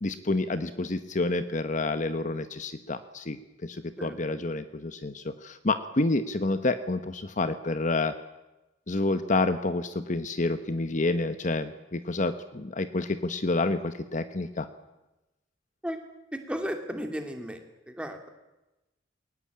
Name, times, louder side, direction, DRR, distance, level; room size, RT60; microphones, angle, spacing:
voice 1, 0.0-8.1 8.9-14.7, left 2 dB, 40° left, 11 dB, 1.0 m, -29 dB
voice 2, 16.3-17.6 17.9-18.3, equal, 5° right, 5 dB, 2.6 m, -34 dB
21.0 x 19.0 x 8.6 m, 1.0 s
head